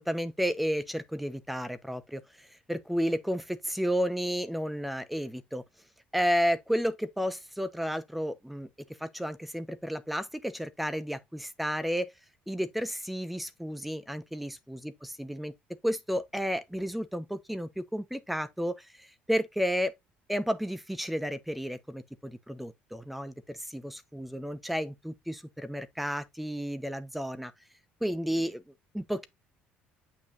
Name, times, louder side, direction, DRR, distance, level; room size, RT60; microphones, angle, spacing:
voice 1, 0.0-5.6 6.1-8.7 9.0-12.1 12.5-15.5 15.8-19.9 20.3-27.5 28.0-29.3, equal, ahead, 0.9 m, -32 dB
8.8 x 5.6 x 2.5 m
cardioid pair, 155°, 4 cm